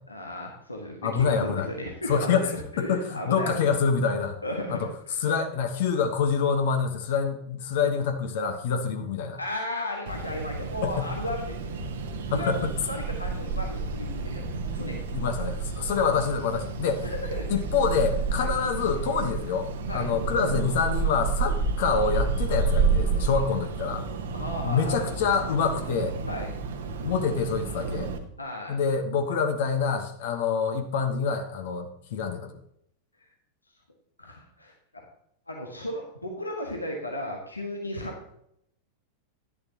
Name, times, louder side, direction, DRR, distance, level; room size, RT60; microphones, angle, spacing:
voice 1, 0.1-3.5 4.4-4.9 9.4-11.7 12.3-12.5 12.9-15.0 17.0-17.5 18.4-18.5 19.9-20.1 24.3-25.1 26.3-26.5 28.4-28.8 34.2-34.7 35.5-38.3, left 1 dB, 85° left, 1 dB, 1.5 m, -35 dB
voice 2, 1.0-1.7 2.1-2.5 2.8-4.4 4.7-4.9 5.2-9.4 10.8-11.1 12.3-12.7 15.1-17.0 17.5-24.1 24.6-26.2 27.0-28.1 28.7-32.5, left 6 dB, 55° left, 6 dB, 1.2 m, -26 dB
sound 1, 10.1-28.2, right 4 dB, 60° right, 1.2 m, -30 dB
11.0 x 10.5 x 2.9 m, 0.73 s
figure-of-eight pair, 90°, 0 cm